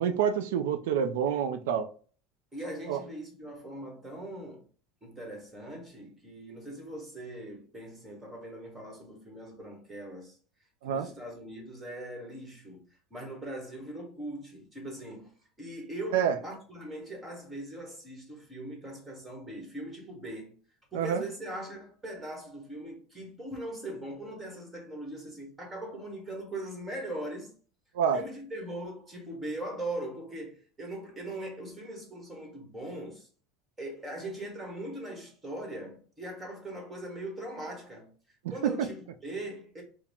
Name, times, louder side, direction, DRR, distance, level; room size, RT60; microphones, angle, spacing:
voice 1, 0.0-1.9 2.9-3.0 10.8-11.1 16.1-16.4 20.9-21.2 27.9-28.2 38.6-38.9, right 8 dB, 90° right, 0.4 m, -27 dB
voice 2, 2.5-4.6 5.0-10.4 10.8-12.8 13.1-15.3 15.6-20.5 20.9-27.5 28.1-33.3 33.8-39.8, right 1 dB, 10° right, 1.3 m, -40 dB
4.7 x 2.0 x 3.5 m
supercardioid pair, 150°, 0 cm